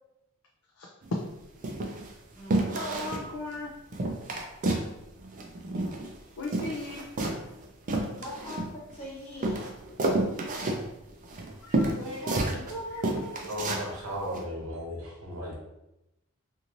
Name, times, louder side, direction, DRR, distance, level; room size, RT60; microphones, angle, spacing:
voice 1, 0.8-1.2 2.7-3.8 6.4-7.0 11.6-11.9, left 2 dB, 70° left, -2 dB, 0.4 m, -36 dB
sound 1, 1.0-1.2 1.6-2.1 2.5-3.3 3.5-3.6 3.9-4.9 5.2-6.2 6.4-9.0 9.4-12.7 13.0-13.9 14.3-14.4, right 2 dB, 40° right, 0.4 m, -30 dB
voice 2, 2.3-3.2 8.2-9.7 12.0-13.5, equal, 30° left, -11 dB, 0.9 m, -41 dB
voice 3, 13.5-15.5, equal, 85° right, -1 dB, 0.8 m, -35 dB
2.6 x 2.5 x 2.9 m, 0.91 s
head